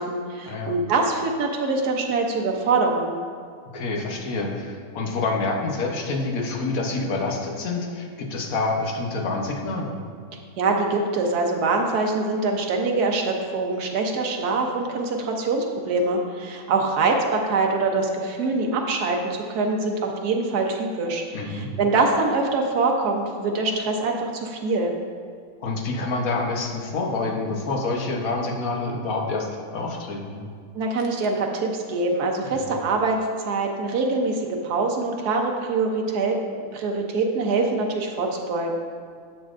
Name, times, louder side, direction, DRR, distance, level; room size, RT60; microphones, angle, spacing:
voice 1, 0.0-3.2 10.6-24.9 30.7-33.2 33.4-36.4 36.7-38.7, right 3 dB, 90° right, 1 dB, 1.4 m, -24 dB
voice 2, 3.7-10.0 21.3-21.7 25.6-30.4, left 3 dB, 65° left, 0 dB, 1.4 m, -27 dB
10.5 x 7.0 x 2.5 m, 2.1 s
omnidirectional pair, 1.6 m